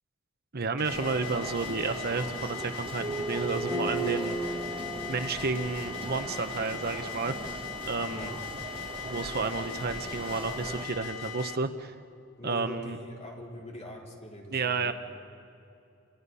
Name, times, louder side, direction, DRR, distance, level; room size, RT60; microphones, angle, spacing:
voice 1, 0.5-4.5 5.1-7.3 7.8-8.3 9.0-11.9 12.4-13.0 14.5-14.9, right 4 dB, 50° right, 9 dB, 0.9 m, -31 dB
sound 1, 0.8-11.6, left 7 dB, 75° left, 1.1 m, -40 dB
sound 2, 0.9-10.8, right 2 dB, 25° right, 1.6 m, -41 dB
sound 3, 3.0-7.4, right 2 dB, 10° right, 6.0 m, -36 dB
voice 2, 8.0-8.4 12.4-14.9, equal, 30° left, -2 dB, 4.3 m, -42 dB
29.5 x 28.5 x 5.6 m, 2.7 s
head